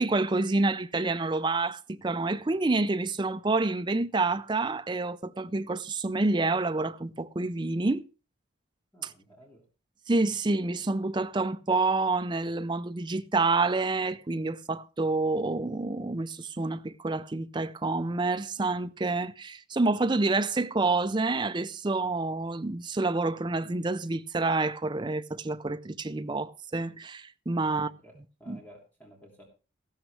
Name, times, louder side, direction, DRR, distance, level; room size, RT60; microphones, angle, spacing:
voice 1, 0.0-8.0 9.0-9.1 10.1-27.9 28.5-28.6, right 3 dB, 25° right, 0.5 m, -28 dB
voice 2, 8.9-9.7 27.7-28.1 28.4-29.4, equal, 10° left, 2.9 m, -53 dB
15.0 x 12.0 x 3.3 m
head